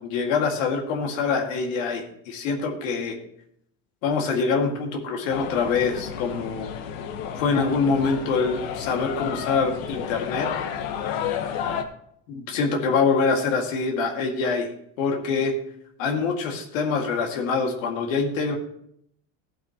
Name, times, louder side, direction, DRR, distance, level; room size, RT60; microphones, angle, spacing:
voice 1, 0.0-3.2 4.0-6.7 7.4-10.5 12.3-14.7 15.0-15.5 16.0-18.5, left 4 dB, 80° left, 1 dB, 2.1 m, -25 dB
sound 1, 5.3-11.8, left 8 dB, 65° left, 1.3 m, -31 dB
15.0 x 8.7 x 3.0 m, 0.70 s
supercardioid pair, 125°, 39 cm